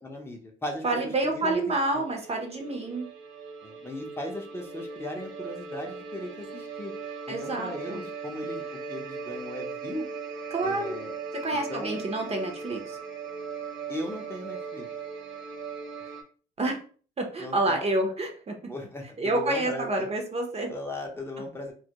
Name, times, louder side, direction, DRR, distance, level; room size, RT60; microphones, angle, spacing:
voice 1, 0.0-1.6 3.6-6.9 7.3-10.1 10.6-11.1 11.7-12.0 13.9-14.9 17.4-17.8 18.7-20.1 20.7-21.7, left 1 dB, 10° left, 0 dB, 0.6 m, -37 dB
voice 2, 0.8-3.1 7.3-8.0 10.5-11.0 11.3-13.0 16.6-16.8 17.2-18.6 19.2-20.7, right 2 dB, 30° right, 3 dB, 0.6 m, -28 dB
sound 1, 1.9-16.2, right 5 dB, 75° right, 0.6 m, -39 dB
2.2 x 2.2 x 2.8 m, 0.41 s
cardioid pair, 90°, 20 cm